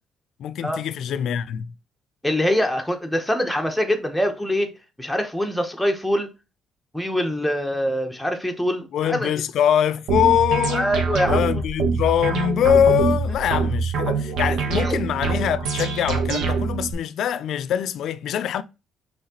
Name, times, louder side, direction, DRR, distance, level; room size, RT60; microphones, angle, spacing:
voice 1, 0.4-1.7 8.9-11.0 11.2-18.6, left 9 dB, 65° left, 0.4 m, -23 dB
voice 2, 2.2-4.7 5.0-6.3 6.9-9.3 10.7-11.5 14.7-15.0, equal, ahead, 0.8 m, -24 dB
sound 1, 10.1-16.9, right 4 dB, 80° right, 1.0 m, -24 dB
5.5 x 3.2 x 2.9 m
cardioid pair, 130°, 0 cm